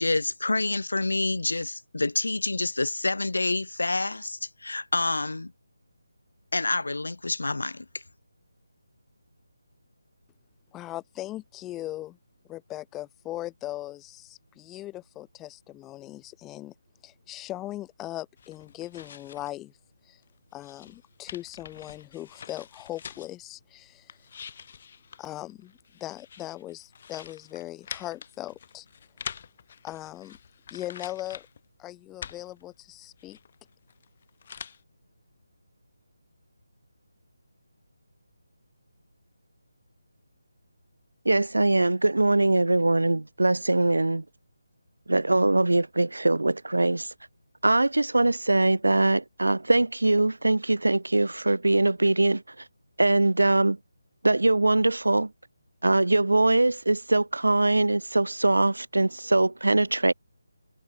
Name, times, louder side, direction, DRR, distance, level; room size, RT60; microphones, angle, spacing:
voice 1, 0.0-5.5 6.5-7.9, left 2 dB, 75° left, 2.3 m, -27 dB
voice 2, 10.7-12.2 12.5-16.7 17.0-19.7 20.0-20.2 20.5-24.1 25.2-28.8 29.8-30.4 30.7-31.5 31.8-33.4, left 15 dB, 10° left, 1.5 m, -39 dB
sound 1, 18.4-19.5 19.9-23.4 23.9-31.6 32.0-34.8, left 7 dB, 40° left, 1.2 m, -45 dB
voice 3, 41.3-44.2 45.1-47.1 47.6-52.4 53.0-53.8 54.2-55.3 55.8-60.1, right 2 dB, 80° right, 0.3 m, -22 dB
figure-of-eight pair, 155°, 0 cm